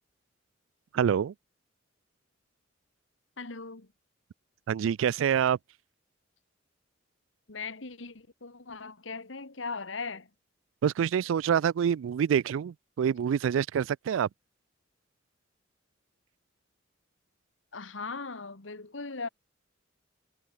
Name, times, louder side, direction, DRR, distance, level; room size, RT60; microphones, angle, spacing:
voice 1, 0.9-1.3 4.7-5.6 10.8-14.3, right 8 dB, 80° right, 0.3 m, -26 dB
voice 2, 3.4-3.9 7.5-10.3 17.7-19.3, left 4 dB, 75° left, 1.8 m, -39 dB
head